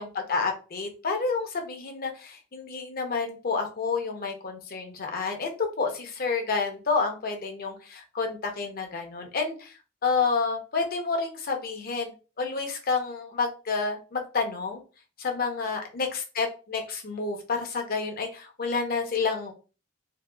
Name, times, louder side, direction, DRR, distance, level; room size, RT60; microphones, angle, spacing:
voice 1, 0.0-14.8 15.2-19.5, left 4 dB, 50° left, 4 dB, 0.6 m, -29 dB
2.7 x 2.2 x 2.3 m, 0.33 s
head